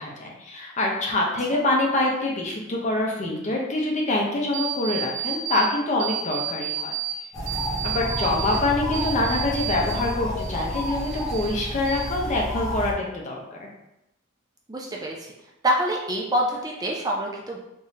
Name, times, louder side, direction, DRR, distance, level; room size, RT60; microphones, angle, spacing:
voice 1, 0.0-6.9 7.8-13.7, left 2 dB, 35° left, -1 dB, 0.7 m, -25 dB
sound 1, 4.5-5.7 6.0-7.1 7.5-10.1 10.4-11.5 11.9-12.5, right 9 dB, 50° right, 0.8 m, -31 dB
sound 2, 7.3-12.9, equal, 20° left, 1.1 m, -30 dB
voice 2, 14.7-15.3 15.6-17.6, right 1 dB, 20° right, -2 dB, 0.4 m, -26 dB
3.6 x 3.1 x 2.8 m, 0.88 s
head